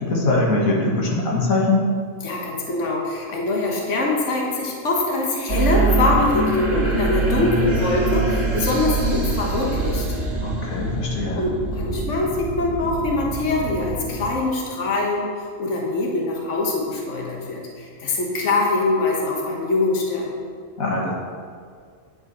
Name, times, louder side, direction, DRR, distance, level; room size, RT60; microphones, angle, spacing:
voice 1, 0.0-1.8 10.4-11.4 20.8-21.1, left 2 dB, 85° left, -2 dB, 1.9 m, -22 dB
voice 2, 2.2-10.1 11.3-15.3 15.6-20.3, left 2 dB, 60° left, -1 dB, 1.7 m, -23 dB
sound 1, 5.5-14.3, right 3 dB, 50° right, 1.8 m, -24 dB
9.7 x 5.6 x 6.0 m, 2.1 s
omnidirectional pair, 1.4 m